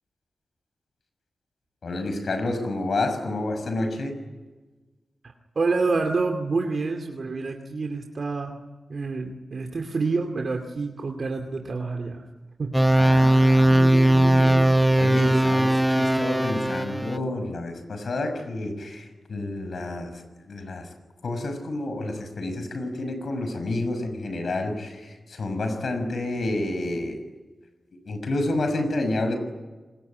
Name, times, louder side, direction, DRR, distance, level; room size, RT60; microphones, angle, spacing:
voice 1, 1.8-4.2 13.0-20.9 21.2-27.2 28.0-29.4, left 2 dB, 70° left, 8 dB, 6.3 m, -29 dB
voice 2, 5.2-8.6 8.9-12.3 12.6-12.8, right 3 dB, 65° right, 3 dB, 2.5 m, -28 dB
sound 1, 12.7-17.2, right 1 dB, 5° right, 1.1 m, -19 dB
27.0 x 21.5 x 9.5 m, 1.2 s
cardioid pair, 55°, 0 cm